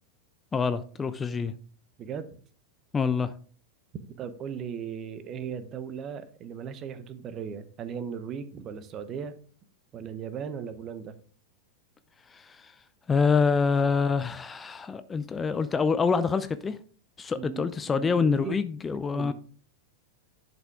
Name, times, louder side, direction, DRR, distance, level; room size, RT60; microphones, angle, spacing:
voice 1, 0.5-1.5 2.9-3.3 12.3-12.7 13.1-16.8 17.2-19.3, left 5 dB, 15° left, 0.5 m, -26 dB
voice 2, 2.0-2.4 4.2-9.4 9.9-11.1 17.4-18.6 19.1-19.3, right 7 dB, 30° right, 1.0 m, -37 dB
10.5 x 5.8 x 3.6 m
figure-of-eight pair, 90°, 0 cm